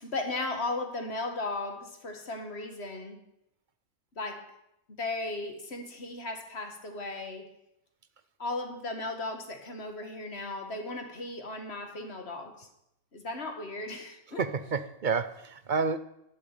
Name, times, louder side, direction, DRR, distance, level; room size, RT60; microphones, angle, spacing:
voice 1, 0.0-3.2 4.2-4.6 5.0-7.4 8.4-12.7 13.1-14.4, left 2 dB, 45° left, 5 dB, 2.3 m, -36 dB
voice 2, 14.3-16.0, right 5 dB, 40° right, 12 dB, 0.8 m, -29 dB
13.0 x 8.6 x 9.1 m, 0.81 s
omnidirectional pair, 1.5 m